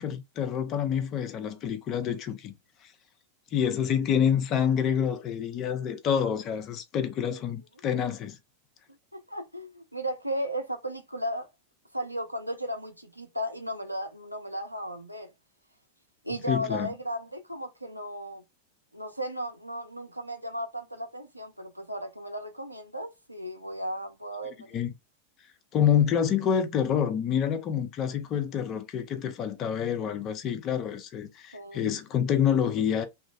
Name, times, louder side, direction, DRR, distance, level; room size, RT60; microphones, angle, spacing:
voice 1, 0.0-2.5 2.8-2.9 3.5-8.4 16.5-16.9 24.7-24.9 25.7-33.0, left 8 dB, 35° left, 0.6 m, -27 dB
voice 2, 9.1-11.5 11.9-15.3 16.2-18.4 18.9-24.8 31.5-32.0, equal, 90° right, 0.6 m, -35 dB
3.0 x 2.4 x 2.4 m
figure-of-eight pair, 90°, 0 cm